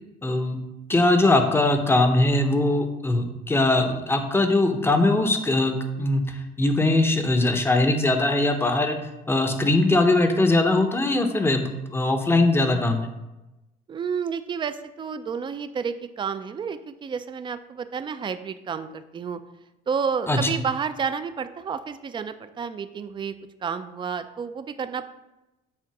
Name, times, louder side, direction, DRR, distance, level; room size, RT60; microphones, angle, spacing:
voice 1, 0.2-0.6 0.9-9.0 9.3-13.1 20.3-20.5, left 2 dB, 15° left, 6 dB, 0.7 m, -21 dB
voice 2, 13.9-19.4 19.9-23.3 23.6-25.0, right 6 dB, 30° right, 11 dB, 0.4 m, -30 dB
7.4 x 2.5 x 5.8 m, 0.99 s
cardioid pair, 110°, 17 cm